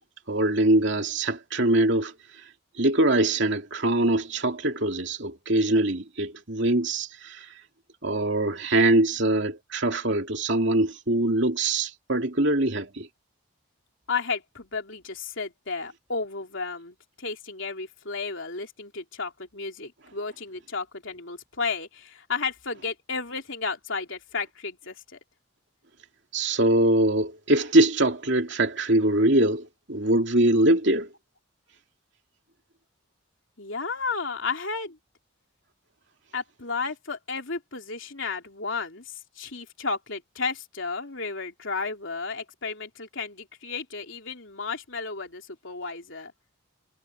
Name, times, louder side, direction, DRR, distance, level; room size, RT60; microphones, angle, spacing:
voice 1, 0.3-2.1 2.8-7.5 8.0-13.1 26.3-31.1, right 1 dB, 55° right, 2.8 m, -23 dB
voice 2, 14.1-25.2 33.6-35.0 36.3-46.3, left 4 dB, 65° left, 3.5 m, -33 dB
head